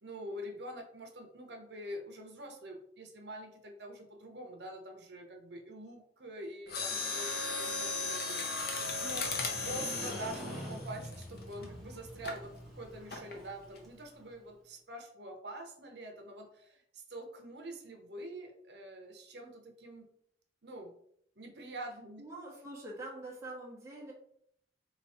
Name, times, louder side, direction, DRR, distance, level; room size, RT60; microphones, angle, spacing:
voice 1, 0.0-8.5 9.0-9.3 9.6-20.1 20.6-20.9 21.4-22.2, right 1 dB, 65° right, 3 dB, 0.9 m, -45 dB
Mechanisms, 6.7-11.6 12.2-12.5 13.1-13.4 13.8-13.9, left 3 dB, 60° left, 0.8 m, -36 dB
Motorcycle, 8.4-14.3, equal, ahead, 0.8 m, -46 dB
voice 2, 22.2-24.1, right 2 dB, 15° right, -4 dB, 1.1 m, -44 dB
3.3 x 3.0 x 4.2 m, 0.69 s
head